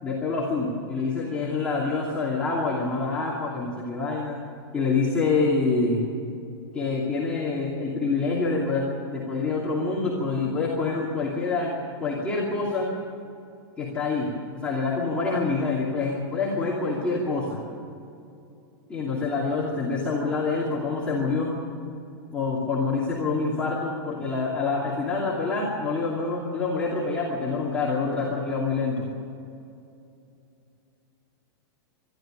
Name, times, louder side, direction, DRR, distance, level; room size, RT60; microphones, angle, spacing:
voice 1, 0.0-4.4 4.7-6.1 6.7-11.7 12.0-12.9 13.8-17.6 18.9-21.6 22.3-29.1, left 3 dB, 10° left, -7 dB, 2.7 m, -26 dB
23.0 x 13.0 x 9.0 m, 2.6 s
supercardioid pair, 165°, 13 cm